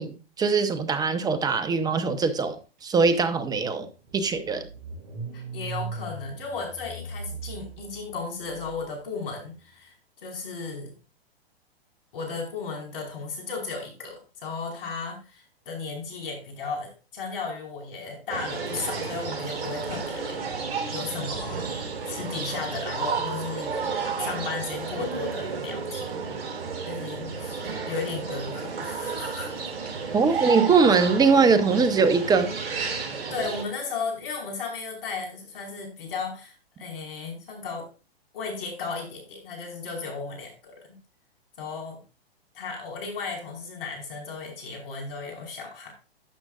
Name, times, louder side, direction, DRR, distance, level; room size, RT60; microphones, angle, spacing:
voice 1, 0.0-3.9 4.1-4.7 30.1-32.5, right 4 dB, 10° right, 0.9 m, -22 dB
Car / Engine starting, 3.1-3.2 3.5-8.7, right 3 dB, 40° right, 4.2 m, -39 dB
voice 2, 5.3-9.9 10.2-10.9 12.1-20.4 20.9-23.8 24.2-26.4 26.9-29.6 30.0-30.2 33.3-37.9 38.3-41.0 41.6-42.0 42.5-45.9, left 4 dB, 60° left, 5.0 m, -35 dB
sound 1, 18.3-33.6, right 5 dB, 70° right, 3.7 m, -32 dB
12.0 x 7.9 x 2.5 m
hypercardioid pair, 125°, 31 cm